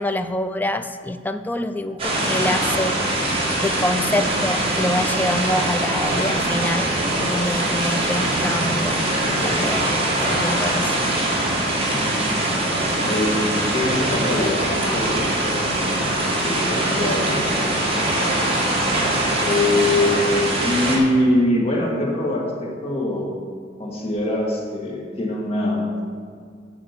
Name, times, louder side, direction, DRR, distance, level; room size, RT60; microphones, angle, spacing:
voice 1, 0.0-3.0 3.6-6.9 7.2-11.1, left 1 dB, 10° left, 9 dB, 0.4 m, -26 dB
sound 1, 2.0-21.0, right 1 dB, 30° right, 1.9 m, -22 dB
voice 2, 13.0-13.4 13.7-15.7 16.3-18.0 19.4-23.3 23.8-26.0, left 1 dB, 35° left, -2 dB, 1.6 m, -23 dB
9.1 x 5.8 x 6.7 m, 2.1 s
head